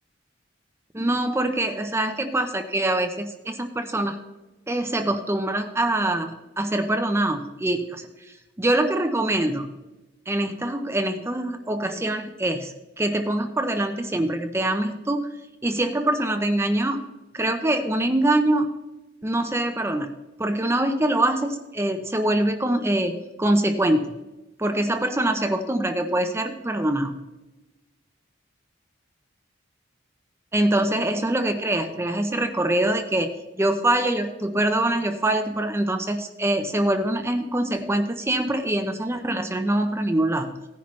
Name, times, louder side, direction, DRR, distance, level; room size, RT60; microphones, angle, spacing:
voice 1, 0.9-4.2 4.7-8.1 8.6-9.7 10.3-17.1 17.3-18.7 19.2-24.2 24.6-27.2 30.5-40.6, right 1 dB, 15° right, 6 dB, 0.6 m, -24 dB
17.0 x 10.0 x 3.1 m, 1.0 s
head